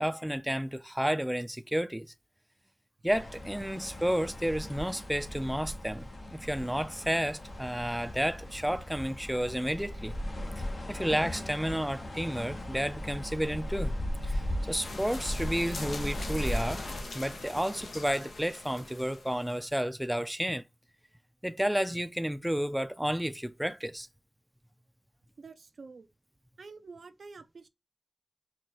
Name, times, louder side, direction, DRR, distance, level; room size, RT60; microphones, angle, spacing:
voice 1, 0.0-2.1 3.0-10.1 10.6-13.9 14.2-16.8 17.1-20.6 21.4-24.1, equal, 5° right, 0.4 m, -31 dB
sound 1, 3.1-17.0, left 1 dB, 65° left, 1.0 m, -37 dB
sound 2, 14.8-19.7, left 2 dB, 85° left, 0.8 m, -42 dB
voice 2, 25.4-26.1 26.6-27.7, right 4 dB, 80° right, 0.4 m, -48 dB
4.5 x 2.3 x 2.9 m
cardioid pair, 50°, 0 cm